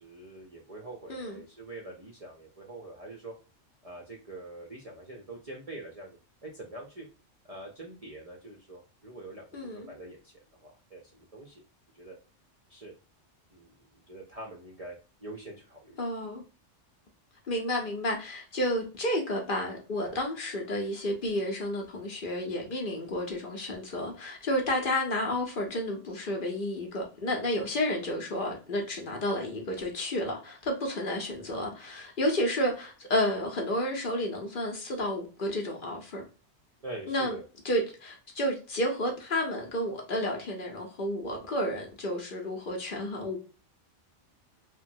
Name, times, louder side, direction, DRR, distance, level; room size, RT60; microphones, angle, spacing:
voice 1, 0.0-3.3 3.8-7.1 7.4-11.6 11.9-12.2 12.7-12.9 13.5-16.0 36.8-37.4, right 2 dB, 45° right, 0.5 m, -45 dB
voice 2, 9.5-9.9 16.0-16.4 17.5-36.2 37.1-37.4 37.6-43.4, left 1 dB, 55° left, 0.7 m, -31 dB
2.9 x 2.2 x 2.6 m
omnidirectional pair, 1.3 m